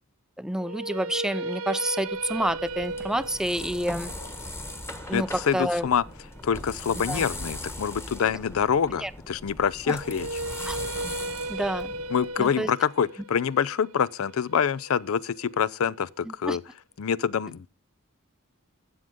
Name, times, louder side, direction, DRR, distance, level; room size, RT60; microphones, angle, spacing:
voice 1, 0.4-4.1 5.1-5.3 5.5-5.9 7.1-7.2 9.0-9.1 9.9-10.0 10.7-10.8 11.5-11.9 12.4-12.7 16.3-16.6, right 1 dB, 5° right, 0.4 m, -28 dB
sound 1, 0.6-6.7 9.9-16.0, right 2 dB, 80° right, 0.7 m, -36 dB
sound 2, 2.1-12.5, left 1 dB, 10° left, 1.2 m, -39 dB
voice 2, 5.1-6.0 6.4-10.3 12.1-16.6 17.0-17.7, left 7 dB, 75° left, 0.5 m, -26 dB
12.5 x 7.8 x 3.6 m
head